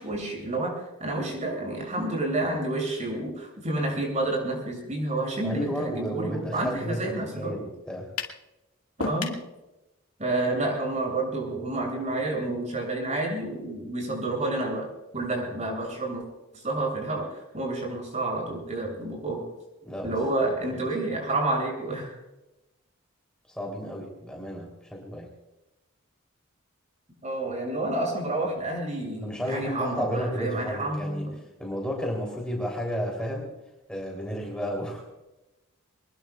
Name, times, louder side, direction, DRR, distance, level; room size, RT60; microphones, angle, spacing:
voice 1, 0.0-7.5 9.0-9.4 10.2-14.9 15.1-16.2 16.6-19.4 20.0-22.2 27.2-31.3, right 2 dB, 35° right, 0 dB, 7.3 m, -29 dB
voice 2, 5.4-8.1 19.8-20.9 23.5-25.3 29.2-31.3 31.6-33.5 33.9-35.0, equal, 5° left, -2 dB, 3.3 m, -32 dB
sound 1, 8.2-8.4 9.0-9.5, left 3 dB, 90° left, 2.2 m, -31 dB
24.0 x 21.5 x 2.4 m, 0.99 s
head